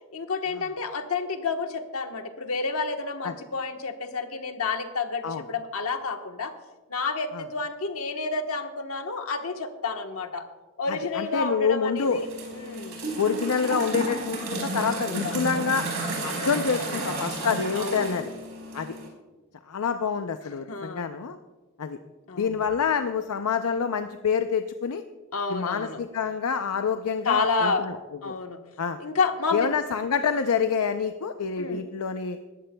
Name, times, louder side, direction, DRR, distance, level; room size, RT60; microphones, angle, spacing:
voice 1, 0.1-6.5 6.9-10.5 10.8-12.3 12.5-13.1 14.8-15.4 16.3-16.9 17.8-18.3 20.7-21.1 22.3-22.5 25.3-26.0 27.2-27.9 28.2-28.6 29.0-29.7 31.6-31.8, left 4 dB, 70° left, 5 dB, 1.2 m, -30 dB
voice 2, 10.9-12.2 13.2-15.9 16.2-18.3 18.7-18.9 19.7-21.4 21.8-22.0 22.4-25.0 25.5-28.0 28.2-28.3 28.8-29.0 29.5-32.4, left 6 dB, 85° left, 8 dB, 0.6 m, -27 dB
sound 1, 12.0-19.1, right 2 dB, 65° right, 4.5 m, -32 dB
20.0 x 14.5 x 2.3 m, 1.2 s
head